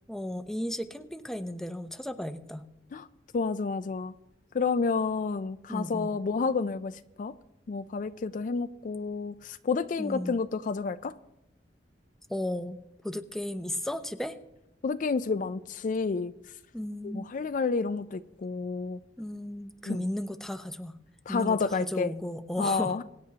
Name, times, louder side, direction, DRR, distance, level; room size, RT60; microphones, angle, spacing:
voice 1, 0.1-2.6 5.7-6.1 10.0-10.3 12.3-12.8 13.0-14.3 16.7-17.3 19.2-20.9 21.3-22.9, left 1 dB, ahead, 0.6 m, -34 dB
voice 2, 3.3-4.1 4.5-6.9 7.2-7.3 7.7-11.1 14.8-16.3 17.0-19.0 19.9-20.0 21.3-22.2 22.6-23.0, left 4 dB, 45° left, 0.4 m, -30 dB
23.5 x 9.6 x 2.8 m
head